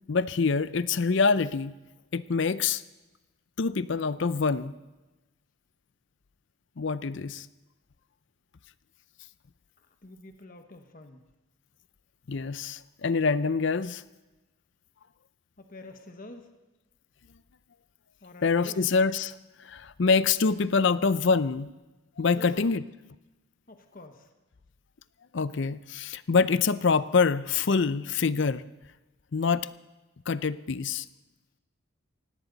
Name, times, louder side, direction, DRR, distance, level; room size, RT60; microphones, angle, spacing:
voice 1, 0.1-1.7 2.1-2.8 3.6-4.7 6.8-7.5 12.3-14.0 18.4-19.3 19.6-21.7 22.2-22.8 25.3-28.6 29.3-29.7 30.3-31.1, left 4 dB, 60° left, 16 dB, 0.5 m, -25 dB
voice 2, 9.8-11.2 15.6-16.5 18.2-18.8 22.3-22.8 23.7-24.3, left 2 dB, 40° left, 6 dB, 1.2 m, -47 dB
17.5 x 17.5 x 4.0 m, 1.1 s
head